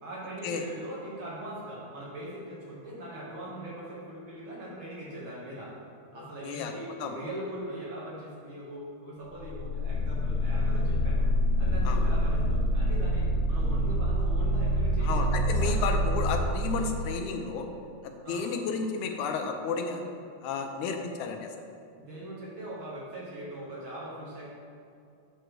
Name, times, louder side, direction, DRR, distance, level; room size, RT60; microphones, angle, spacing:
voice 1, 0.0-5.8 6.1-11.3 11.6-15.2 15.6-15.8 18.2-18.5 22.0-24.5, right 1 dB, 55° right, -6 dB, 1.6 m, -40 dB
voice 2, 6.1-6.7 7.0-7.1 11.9-12.0 15.0-17.7 18.0-20.0 20.4-21.5, left 5 dB, 90° left, 4 dB, 2.1 m, -32 dB
sound 1, 9.4-17.0, equal, 55° left, 1.1 m, -26 dB
7.9 x 3.1 x 6.1 m, 2.5 s
omnidirectional pair, 3.3 m